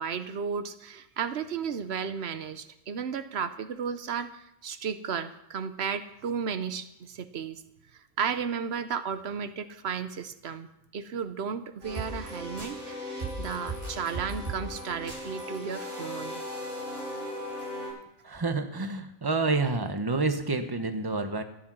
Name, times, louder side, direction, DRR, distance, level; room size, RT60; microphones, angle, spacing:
voice 1, 0.0-7.6 8.2-10.7 10.9-16.4, right 6 dB, 85° right, 11 dB, 1.1 m, -34 dB
sound 1, 11.8-17.9, equal, 55° right, 8.0 m, -37 dB
voice 2, 18.2-21.4, right 3 dB, 25° right, 8 dB, 1.1 m, -28 dB
14.5 x 10.5 x 6.1 m, 0.81 s
omnidirectional pair, 1.1 m